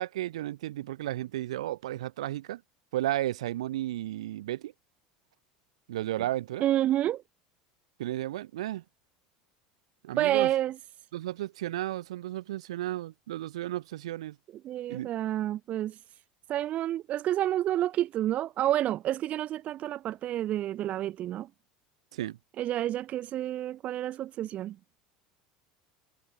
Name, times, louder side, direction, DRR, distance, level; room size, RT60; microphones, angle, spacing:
voice 1, 0.0-2.6 2.9-4.7 5.9-6.6 8.0-8.8 10.0-10.5 11.1-14.4 14.9-15.1 22.1-22.4, right 14 dB, 75° right, 2.0 m, -33 dB
voice 2, 6.6-7.2 10.2-10.8 14.6-16.0 16.5-21.5 22.6-24.8, right 13 dB, 45° right, 0.9 m, -29 dB
hypercardioid pair, 80°, 3 cm